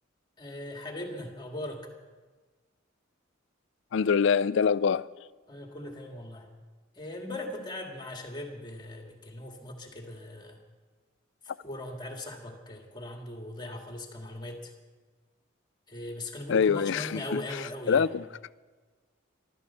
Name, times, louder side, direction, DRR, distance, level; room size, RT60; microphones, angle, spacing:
voice 1, 0.4-1.9 5.5-6.5 7.0-10.6 11.6-14.7 15.9-18.1, left 1 dB, 20° left, 2.0 m, -39 dB
voice 2, 3.9-5.1 16.5-17.6 17.9-18.3, left 6 dB, 65° left, 0.4 m, -25 dB
14.5 x 12.5 x 6.9 m
head